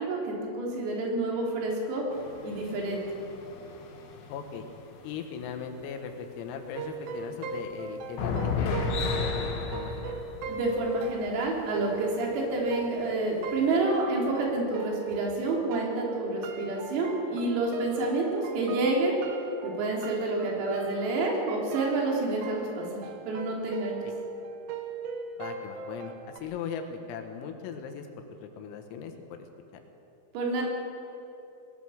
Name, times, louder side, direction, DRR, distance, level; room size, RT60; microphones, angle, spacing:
voice 1, 0.0-2.1 2.4-3.0 10.5-19.2 19.6-24.0 30.3-30.6, right 2 dB, 85° right, -2 dB, 6.2 m, -29 dB
sound 1, 2.1-5.9 6.3-6.4 6.7-7.2 7.9-11.3 12.1-12.2 12.6-12.7, left 5 dB, 65° left, 4.0 m, -34 dB
voice 2, 4.3-4.7 5.0-10.2 25.4-29.4 29.7-29.8, left 6 dB, 80° left, 5 dB, 4.2 m, -39 dB
sound 2, 6.8-15.4 15.7-26.4, right 5 dB, 65° right, 3.2 m, -39 dB
21.5 x 20.0 x 6.5 m, 2.8 s
omnidirectional pair, 6.0 m